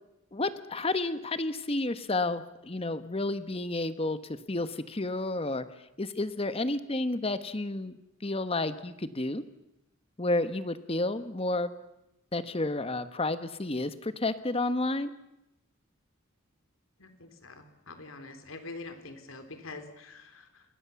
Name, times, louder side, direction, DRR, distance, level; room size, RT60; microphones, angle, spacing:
voice 1, 0.3-4.2 4.5-5.6 6.0-8.0 8.2-9.4 10.2-11.7 12.3-15.1, left 2 dB, 30° left, 12 dB, 1.1 m, -31 dB
voice 2, 17.0-20.6, left 3 dB, 85° left, 8 dB, 3.5 m, -45 dB
27.5 x 21.0 x 7.0 m, 0.86 s
head